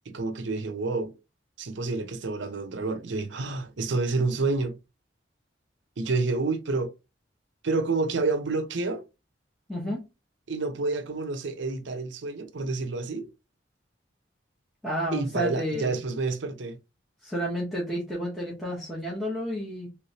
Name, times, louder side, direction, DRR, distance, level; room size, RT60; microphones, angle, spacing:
voice 1, 0.1-1.1 1.6-4.8 6.0-6.9 7.6-9.0 10.5-13.3 15.1-16.8, right 3 dB, 75° right, 0.6 m, -29 dB
voice 2, 9.7-10.0 14.8-16.0 17.2-19.9, equal, ahead, 1.0 m, -31 dB
3.2 x 3.1 x 2.8 m
head